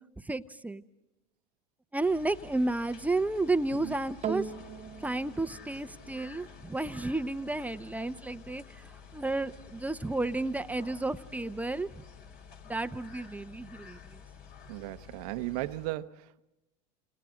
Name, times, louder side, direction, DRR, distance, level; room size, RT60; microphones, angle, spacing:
voice 1, 0.3-0.8 1.9-4.5 5.0-12.0 12.7-14.0, right 2 dB, 5° right, 0.8 m, -32 dB
sound 1, 2.0-15.9, left 7 dB, 50° left, 4.3 m, -51 dB
sound 2, 4.2-12.8 13.5-13.6, right 7 dB, 35° right, 1.1 m, -44 dB
voice 2, 14.7-16.4, right 17 dB, 70° right, 0.9 m, -36 dB
28.5 x 28.5 x 3.8 m
hypercardioid pair, 100°, 20 cm